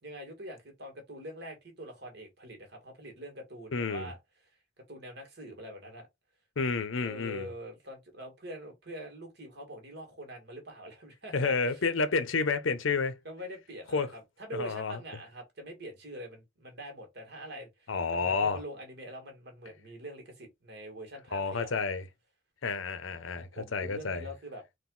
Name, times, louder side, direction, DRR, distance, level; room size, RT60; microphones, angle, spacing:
voice 1, 0.0-4.2 4.8-6.1 7.0-11.8 13.2-21.7 23.1-24.6, right 1 dB, 60° right, 1.8 m, -44 dB
voice 2, 3.7-4.1 6.6-7.5 11.3-13.2 13.9-14.1 14.5-15.0 17.9-18.6 21.3-22.0 22.6-24.2, left 4 dB, 85° left, 0.7 m, -30 dB
3.9 x 2.6 x 3.8 m
head